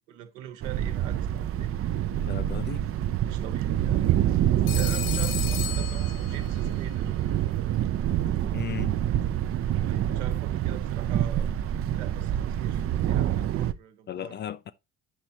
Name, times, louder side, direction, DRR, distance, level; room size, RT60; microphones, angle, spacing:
voice 1, 0.0-1.7 3.2-4.2 4.7-7.2 9.8-11.5 11.9-14.4, right 10 dB, 70° right, 1.3 m, -42 dB
Thunder, 0.6-13.7, right 11 dB, 35° right, 0.5 m, -26 dB
voice 2, 2.3-2.8 8.5-8.9 14.1-14.7, left 10 dB, 30° left, 0.4 m, -35 dB
Telephone, 4.7-6.7, left 12 dB, 60° left, 0.9 m, -35 dB
9.2 x 6.1 x 2.9 m
figure-of-eight pair, 50°, 39 cm